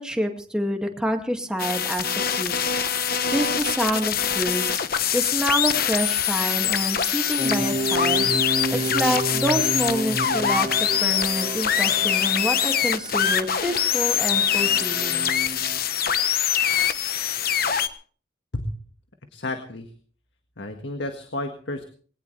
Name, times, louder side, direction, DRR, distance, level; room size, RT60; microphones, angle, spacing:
voice 1, 0.0-2.6 3.3-4.8 5.1-8.3 8.7-10.7 11.0-15.3, equal, 5° right, 3 dB, 2.2 m, -27 dB
sound 1, 1.6-17.9, left 9 dB, 55° left, 1.1 m, -24 dB
sound 2, 7.4-15.8, right 1 dB, 40° right, 2.8 m, -31 dB
voice 2, 19.3-19.9 20.6-21.8, left 1 dB, 80° left, 5 dB, 1.7 m, -31 dB
21.0 x 18.0 x 3.3 m, 0.43 s
head